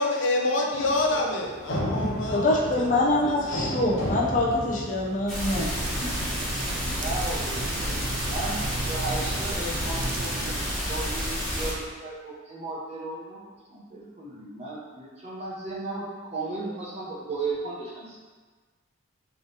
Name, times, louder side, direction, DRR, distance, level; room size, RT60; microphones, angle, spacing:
voice 1, 0.0-3.8, left 2 dB, 65° left, 0 dB, 0.6 m, -28 dB
sound 1, 0.7-5.6, equal, 90° left, 1.2 m, -33 dB
voice 2, 2.3-5.7, left 2 dB, 40° left, -4 dB, 0.8 m, -25 dB
sound 2, 5.3-11.7, equal, ahead, 1.2 m, -30 dB
sound 3, 5.4-10.8, right 3 dB, 60° right, 0.4 m, -36 dB
voice 3, 6.8-10.6 10.9-18.2, right 2 dB, 30° right, -5 dB, 0.9 m, -35 dB
3.8 x 3.3 x 4.0 m, 1.4 s
head